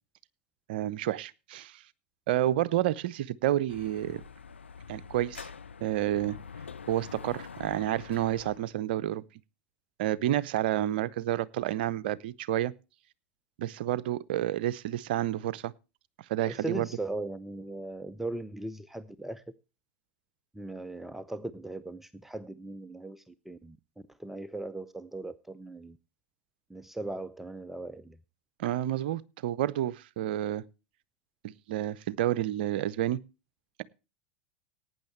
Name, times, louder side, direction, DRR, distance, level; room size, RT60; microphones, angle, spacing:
voice 1, 0.7-1.8 2.3-4.2 4.9-5.5 5.8-6.4 6.9-9.2 10.0-12.7 13.6-15.7 16.3-16.9 28.6-30.6 31.4-33.2, right 13 dB, 55° right, 0.6 m, -30 dB
Dog / Motorcycle, 3.7-8.7, left 6 dB, 80° left, 0.5 m, -45 dB
voice 2, 16.5-19.4 20.5-23.8 24.2-26.0 26.7-28.2, right 2 dB, 5° right, 0.5 m, -38 dB
18.0 x 9.3 x 3.2 m
figure-of-eight pair, 85°, 6 cm